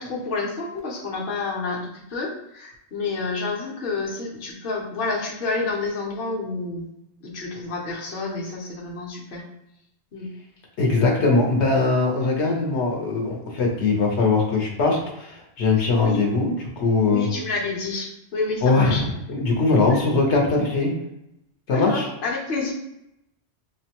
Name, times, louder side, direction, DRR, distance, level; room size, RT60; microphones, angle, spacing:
voice 1, 0.0-6.9 7.2-9.4 10.1-10.3 16.0-16.2 17.1-19.1 19.9-20.0 21.7-22.7, left 3 dB, 55° left, -3 dB, 1.0 m, -29 dB
voice 2, 10.8-17.3 18.6-20.9 21.7-22.1, left 3 dB, 80° left, -1 dB, 1.1 m, -21 dB
5.6 x 2.2 x 2.8 m, 0.83 s
omnidirectional pair, 1.1 m